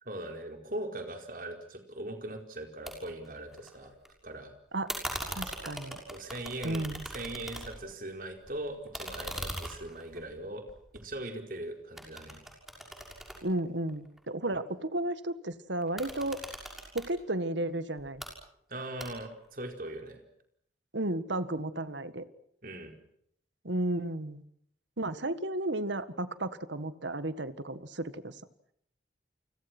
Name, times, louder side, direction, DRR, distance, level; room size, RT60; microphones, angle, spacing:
voice 1, 0.0-3.9 4.2-4.5 6.1-10.6 10.9-12.4 18.7-20.2 22.6-22.9, right 1 dB, 45° right, 5 dB, 4.6 m, -40 dB
sound 1, 2.9-3.0 3.2-4.1 4.9-7.9 8.3-11.5 12.0-14.2 15.8-17.1 18.0-18.3 19.0-19.5, equal, ahead, 6.2 m, -41 dB
voice 2, 5.4-6.0 6.6-7.1 13.4-16.4 16.9-18.2 20.9-22.3 23.6-24.4 25.0-28.3, right 1 dB, 80° right, 13 dB, 1.7 m, -33 dB
29.5 x 25.5 x 6.2 m, 0.69 s
head